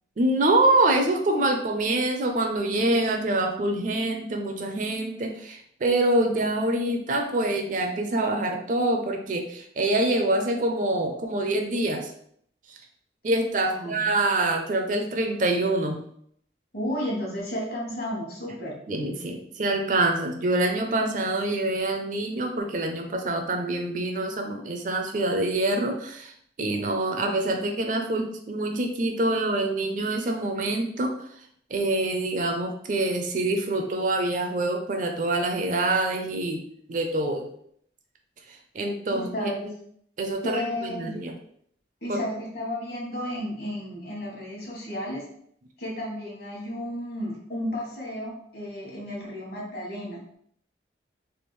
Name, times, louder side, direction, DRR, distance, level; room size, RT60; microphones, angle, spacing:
voice 1, 0.2-12.1 13.2-16.0 18.9-26.3 26.6-31.2 31.7-36.6 36.9-37.5 38.5-39.5 40.2-41.3 42.1-42.2, right 2 dB, 45° right, 4 dB, 0.4 m, -25 dB
voice 2, 13.7-14.1 16.7-18.8 39.1-39.7 40.4-41.2 42.0-45.3 45.8-50.2, equal, 55° left, -2 dB, 1.1 m, -33 dB
3.4 x 2.3 x 3.1 m, 0.66 s
head